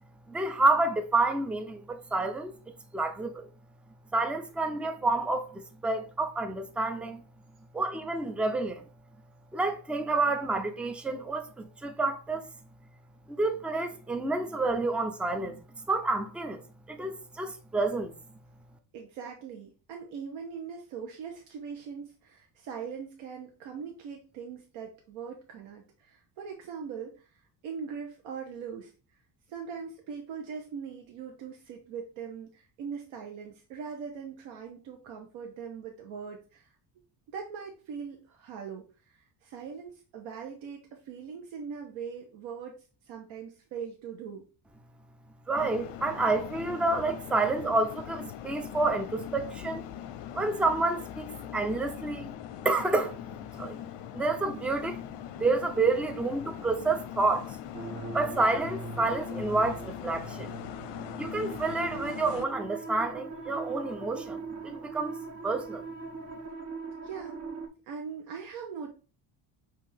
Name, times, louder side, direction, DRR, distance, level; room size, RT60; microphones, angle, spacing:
voice 1, 0.3-2.5 2.9-3.5 4.1-7.2 7.7-8.8 9.5-12.4 13.4-15.6 15.9-16.6 16.9-18.1 45.5-49.8 50.3-52.4 52.6-53.2 53.6-53.8 54.1-55.0 55.4-57.6 58.1-60.5 61.2-64.4 64.6-65.2 65.4-65.8, right 3 dB, 5° right, 0.3 m, -29 dB
voice 2, 18.9-28.9 29.5-36.7 37.3-42.7 43.1-44.4 67.0-67.4 67.9-68.9, right 6 dB, 90° right, 1.0 m, -41 dB
sound 1, 45.5-62.4, left 11 dB, 65° left, 0.6 m, -41 dB
sound 2, 57.7-67.7, right 4 dB, 35° right, 0.8 m, -41 dB
5.5 x 2.7 x 3.3 m
cardioid pair, 115°, 47 cm